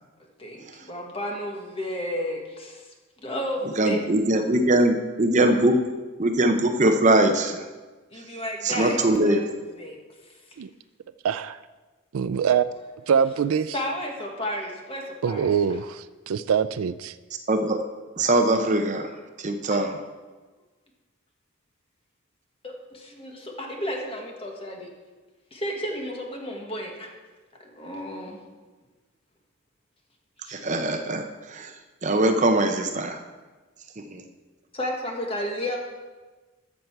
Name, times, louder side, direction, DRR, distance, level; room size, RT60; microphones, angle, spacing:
voice 1, 0.4-2.9 3.2-4.0 8.1-10.0 10.2-10.3 13.7-15.7 19.7-19.8 22.6-24.9 25.5-27.1 27.6-28.4 30.4-30.6 34.7-35.8, equal, 25° left, 1 dB, 1.5 m, -32 dB
voice 2, 3.8-5.8 6.2-7.6 8.6-9.4 17.5-17.8 18.2-19.1 19.4-19.9 30.5-31.2 31.5-31.7 32.0-33.2 34.1-34.2, right 1 dB, 35° right, 6 dB, 0.7 m, -21 dB
voice 3, 11.2-11.6 12.1-12.6 13.1-13.7 15.2-17.1, right 7 dB, 85° right, 14 dB, 0.4 m, -24 dB
13.5 x 6.7 x 4.6 m, 1.3 s
head